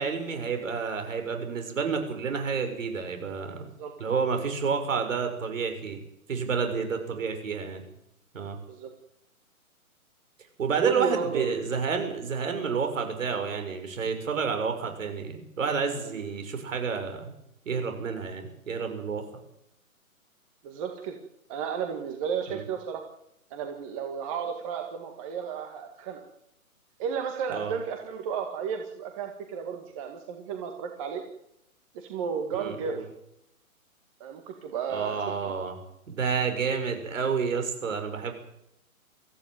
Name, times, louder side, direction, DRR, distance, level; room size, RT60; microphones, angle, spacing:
voice 1, 0.0-3.7 4.0-6.0 6.3-7.8 8.3-8.6 10.6-17.3 17.6-19.2 22.5-22.6 27.5-27.7 32.5-33.0 34.9-35.7 36.1-38.3, right 5 dB, 60° right, 6 dB, 6.8 m, -30 dB
voice 2, 10.8-11.5 16.0-16.1 20.6-21.2 21.5-23.0 23.5-26.2 27.0-31.2 31.9-33.0 34.2-35.5, right 7 dB, 25° right, 4 dB, 1.9 m, -33 dB
23.5 x 15.5 x 9.2 m, 0.79 s
hypercardioid pair, 160°, 43 cm